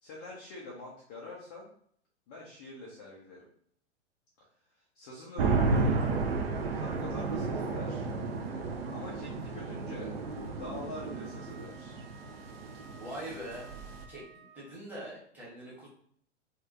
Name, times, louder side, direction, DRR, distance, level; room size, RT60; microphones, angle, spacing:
voice 1, 0.0-1.7 2.3-3.5 4.4-4.5 4.9-6.0 6.7-8.1 8.9-12.0, left 2 dB, 15° left, -4 dB, 0.3 m, -45 dB
sound 1, 5.4-14.0, right 3 dB, 55° right, 0.5 m, -32 dB
Wind instrument woodwind instrument, 10.2-14.9, right 4 dB, 35° right, 1.0 m, -56 dB
voice 2, 12.8-13.7 14.1-15.9, right 1 dB, 5° right, -8 dB, 1.2 m, -43 dB
2.9 x 2.4 x 2.5 m, 0.64 s
figure-of-eight pair, 100°, 36 cm